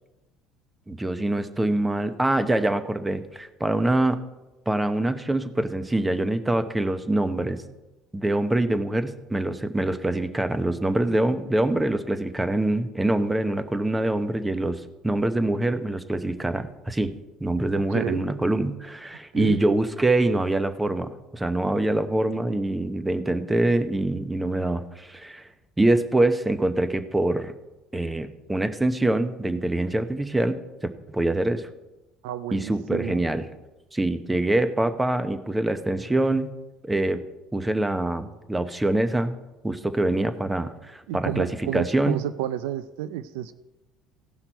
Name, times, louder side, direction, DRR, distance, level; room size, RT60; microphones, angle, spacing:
voice 1, 0.9-4.2 4.7-7.6 8.1-17.1 17.4-25.5 25.8-27.5 27.9-30.6 31.1-31.7 32.5-33.5 33.9-36.5 36.8-37.2 37.5-39.3 39.6-41.5 41.7-42.2, right 1 dB, 10° right, 11 dB, 0.8 m, -24 dB
voice 2, 17.9-18.2 19.3-19.6 32.2-33.2 41.1-43.5, right 12 dB, 85° right, 14 dB, 0.4 m, -30 dB
16.0 x 5.7 x 4.6 m, 1.0 s
supercardioid pair, 90°, 0 cm